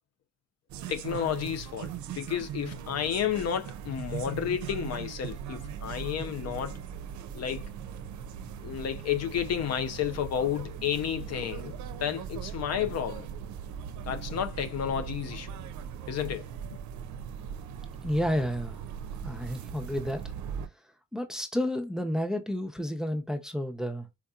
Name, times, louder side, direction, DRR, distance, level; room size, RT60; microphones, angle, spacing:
sound 1, 0.7-20.7, right 8 dB, 75° right, 0.5 m, -39 dB
voice 1, 0.9-6.8 7.3-7.7 8.6-11.7 12.0-13.3 14.1-15.5 16.1-16.5, left 9 dB, 55° left, 0.6 m, -31 dB
voice 2, 18.0-18.8 19.2-20.2 21.1-24.1, equal, ahead, 0.6 m, -31 dB
4.5 x 2.7 x 2.3 m
cardioid pair, 90°, 30 cm